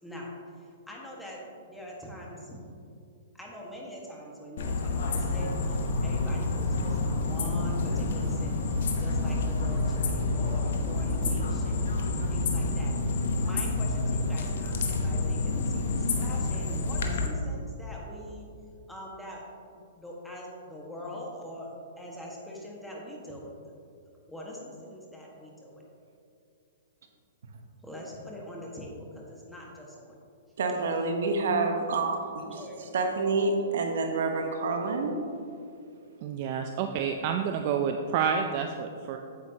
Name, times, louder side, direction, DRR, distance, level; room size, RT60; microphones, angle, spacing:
voice 1, 0.0-1.4 1.7-2.6 3.3-11.9 12.3-18.5 18.9-19.4 19.7-23.5 24.3-25.8 27.8-30.2 32.4-32.8, equal, 5° left, -3 dB, 1.5 m, -43 dB
sound 1, 4.6-17.3, left 3 dB, 65° left, 1.0 m, -28 dB
voice 2, 30.6-32.6 32.9-35.2, right 3 dB, 70° right, 4 dB, 1.0 m, -28 dB
voice 3, 36.2-39.2, right 7 dB, 45° right, 5 dB, 0.5 m, -29 dB
8.7 x 8.1 x 2.9 m, 2.5 s
hypercardioid pair, 130°, 0 cm